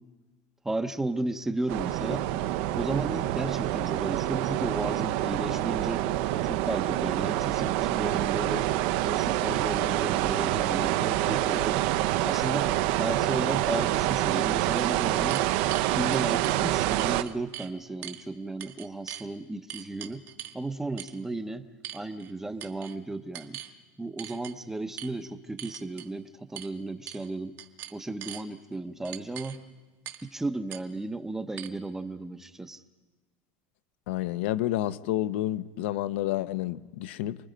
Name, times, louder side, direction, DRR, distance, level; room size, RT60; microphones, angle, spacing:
voice 1, 0.6-2.3 2.7-6.0 6.5-8.7 9.0-11.8 12.2-12.7 13.0-15.4 16.0-20.2 20.5-21.7 21.9-23.6 24.0-27.5 27.9-29.6 30.3-32.8, right 2 dB, 5° right, 0.7 m, -34 dB
sound 1, 1.7-17.2, right 14 dB, 65° right, 0.7 m, -27 dB
sound 2, 15.3-16.6 17.0-17.7 18.0-18.2 18.6-19.3 19.7-20.6 21.0-21.2 21.8-22.3 22.6-23.0 23.3-23.7 24.2-24.5 25.0-25.1 25.6-26.1 26.6-26.7 27.1-27.3 27.6-28.4 29.1-29.6 30.1-30.3 30.7-30.8 31.6-31.7, right 12 dB, 40° right, 1.4 m, -41 dB
voice 2, 34.1-37.4, left 14 dB, 85° left, 0.8 m, -29 dB
27.5 x 20.5 x 5.1 m
cardioid pair, 160°, 6 cm